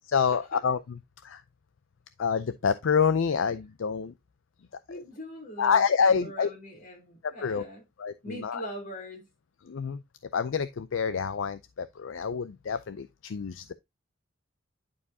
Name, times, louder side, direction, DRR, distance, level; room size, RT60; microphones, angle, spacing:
voice 1, 0.1-1.4 2.2-4.1 5.6-6.5 7.2-7.6 8.0-8.6 9.6-10.0 10.3-13.7, left 6 dB, 65° left, 0.4 m, -27 dB
voice 2, 4.9-7.8 8.2-9.3, equal, 40° left, 3.2 m, -41 dB
11.0 x 4.7 x 2.7 m
head